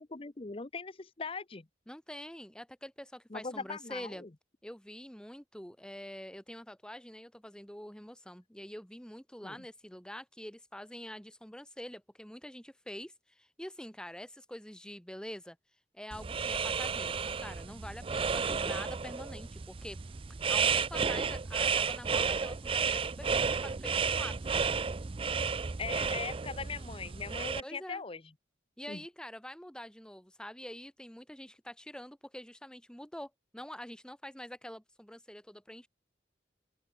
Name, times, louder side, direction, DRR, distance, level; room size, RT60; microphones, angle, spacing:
voice 1, 0.0-1.7 3.3-4.3 9.4-9.7 18.3-18.7 25.8-28.2 28.9-29.0, left 4 dB, 30° left, 0.8 m, -40 dB
voice 2, 1.9-4.2 4.6-15.6 15.9-20.0 20.5-24.4 27.6-28.0 28.8-35.9, equal, 5° left, 1.3 m, -46 dB
sound 1, 16.1-27.6, right 5 dB, 30° right, 0.5 m, -32 dB
open air
head